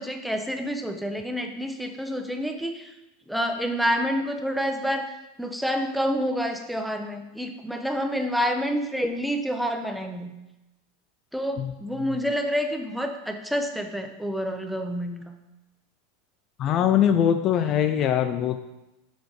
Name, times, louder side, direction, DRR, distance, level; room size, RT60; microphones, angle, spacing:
voice 1, 0.0-2.9 3.3-5.1 5.4-10.3 11.3-15.2, equal, ahead, 5 dB, 0.8 m, -28 dB
voice 2, 16.6-18.6, left 9 dB, 40° left, 9 dB, 0.4 m, -22 dB
6.4 x 5.0 x 4.8 m, 0.95 s
supercardioid pair, 115°, 0 cm